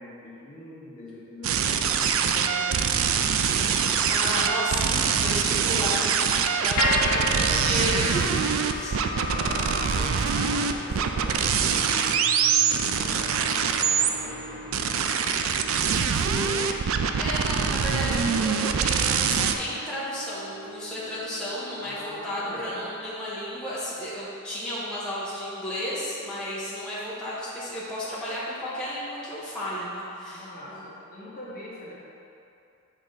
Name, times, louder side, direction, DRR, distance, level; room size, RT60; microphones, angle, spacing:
voice 1, 0.0-3.3 7.0-7.6 7.9-8.5 9.1-16.9 17.2-18.7 21.8-22.9 30.3-31.9, left 1 dB, 40° left, -7 dB, 1.3 m, -43 dB
sound 1, 1.4-14.1 14.7-19.5, right 6 dB, 65° right, 0.4 m, -24 dB
voice 2, 3.9-6.2 6.5-8.4 8.7-9.0 11.0-11.1 17.2-30.9, equal, 5° left, -10 dB, 1.1 m, -33 dB
sound 2, 6.8-23.0, left 1 dB, 90° left, 1.0 m, -36 dB
sound 3, 12.9-18.0, left 1 dB, 25° left, 1.0 m, -47 dB
8.1 x 4.0 x 3.9 m, 2.7 s
head